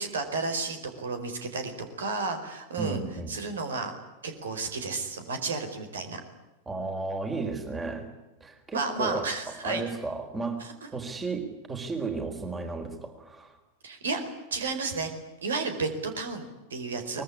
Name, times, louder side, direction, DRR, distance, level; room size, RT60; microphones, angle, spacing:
voice 1, 0.0-1.7 2.0-3.0 3.3-3.9 4.2-6.2 8.7-9.8 13.8-14.2 14.5-15.1 15.4-17.2, right 4 dB, 65° right, 8 dB, 4.6 m, -32 dB
voice 2, 2.8-3.3 6.7-8.1 8.4-10.6 10.9-13.6 17.1-17.2, right 3 dB, 15° right, 6 dB, 4.3 m, -34 dB
24.0 x 22.0 x 9.9 m, 1.0 s
figure-of-eight pair, 90°, 0 cm